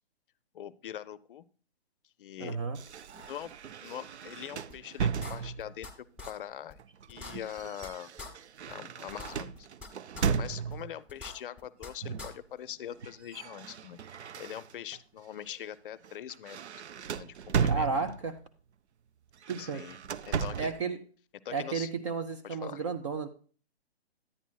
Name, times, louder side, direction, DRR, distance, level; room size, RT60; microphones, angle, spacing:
voice 1, 0.5-1.4 2.2-2.6 3.1-3.5 3.8-5.9 6.3-6.8 7.1-8.1 8.7-9.7 10.3-14.0 14.4-16.8 17.1-17.9 19.6-20.0 20.3-20.7 21.4-21.9 22.4-22.8, left 10 dB, 55° left, 17 dB, 0.5 m, -42 dB
voice 2, 2.4-2.8 17.7-18.4 19.5-19.9 20.6-21.0 21.5-23.3, right 4 dB, 30° right, 9 dB, 0.4 m, -33 dB
sound 1, 2.7-5.8 6.8-11.0 12.0-12.4 12.7-15.0 15.5-15.7 16.0-18.4 19.3-20.8, right 6 dB, 85° right, 0.5 m, -35 dB
sound 2, 4.7-4.8 5.2-5.9 6.2-6.3 6.7-6.8 7.1-7.9 8.2-8.3 8.7-8.8 9.1-9.9 10.2-10.3 10.7-10.8 11.1-11.9 12.2-12.3, left 3 dB, 5° right, 0.9 m, -43 dB
9.8 x 9.0 x 2.3 m, 0.40 s
hypercardioid pair, 130°, 33 cm